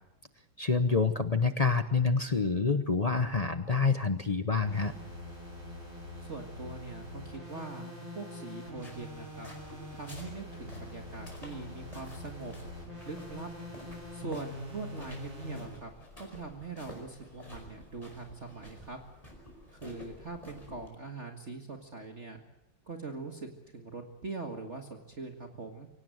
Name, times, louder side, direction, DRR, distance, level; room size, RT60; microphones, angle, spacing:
voice 1, 0.6-4.9, left 4 dB, 40° left, 9 dB, 0.5 m, -27 dB
sound 1, 4.6-15.7, left 1 dB, 65° right, 7.4 m, -44 dB
voice 2, 6.3-9.5 9.9-12.5 13.0-13.5 14.1-15.9 16.2-19.0 19.7-22.4 22.9-23.5 23.7-25.9, right 3 dB, 35° right, 4 dB, 2.0 m, -42 dB
sound 2, 8.6-20.9, equal, 15° left, 5.3 m, -51 dB
24.5 x 17.5 x 7.9 m, 0.87 s
omnidirectional pair, 2.2 m